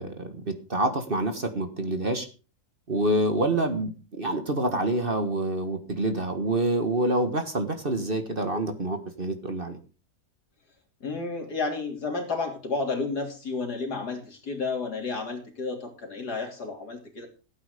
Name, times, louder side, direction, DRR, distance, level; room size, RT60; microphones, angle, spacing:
voice 1, 0.0-2.3 2.9-3.9 4.2-9.8, right 2 dB, 35° right, 8 dB, 1.6 m, -27 dB
voice 2, 11.0-17.3, left 3 dB, 70° left, 3 dB, 3.8 m, -31 dB
15.5 x 8.8 x 5.1 m, 0.35 s
omnidirectional pair, 1.8 m